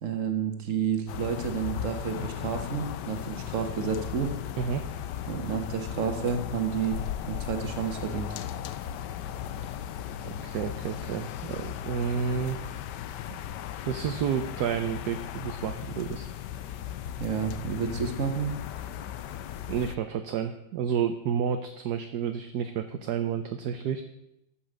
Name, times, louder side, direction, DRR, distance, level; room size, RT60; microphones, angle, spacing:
voice 1, 0.0-4.3 5.3-7.0 7.3-8.3 17.2-18.5, right 7 dB, 45° right, 7 dB, 1.5 m, -30 dB
sound 1, 1.1-20.0, left 10 dB, 70° left, 1.2 m, -37 dB
voice 2, 4.6-4.9 10.2-12.6 13.9-16.3 19.7-24.0, right 7 dB, 65° right, 7 dB, 1.2 m, -30 dB
14.0 x 5.8 x 6.4 m, 0.84 s
omnidirectional pair, 2.0 m